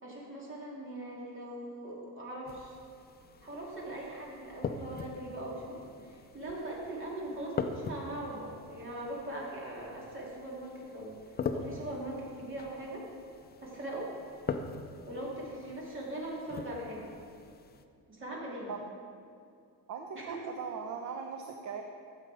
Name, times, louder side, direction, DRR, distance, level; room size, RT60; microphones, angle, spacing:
voice 1, 0.0-2.7 3.4-11.1 11.5-13.0 13.6-14.1 15.1-17.1 18.1-18.7 20.1-20.4, right 1 dB, 30° right, -4 dB, 2.7 m, -40 dB
sound 1, 2.5-17.8, left 5 dB, 25° left, 0.5 m, -42 dB
voice 2, 19.9-21.8, right 6 dB, 45° right, 4 dB, 0.8 m, -39 dB
13.5 x 7.4 x 4.8 m, 2.5 s
cardioid pair, 140°, 39 cm